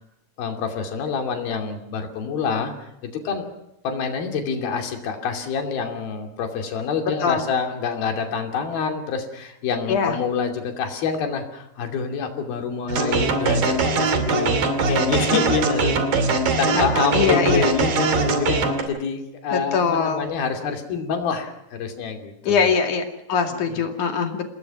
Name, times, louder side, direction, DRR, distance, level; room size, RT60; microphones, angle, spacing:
voice 1, 0.4-3.5 3.8-22.7 23.5-23.8, left 5 dB, 75° left, 4 dB, 4.5 m, -27 dB
sound 1, 12.9-18.8, right 4 dB, 65° right, 4.4 m, -21 dB
voice 2, 17.1-17.7 19.5-20.3 22.5-24.5, left 6 dB, 55° left, 4 dB, 3.7 m, -22 dB
28.0 x 19.5 x 6.1 m, 0.80 s
omnidirectional pair, 4.3 m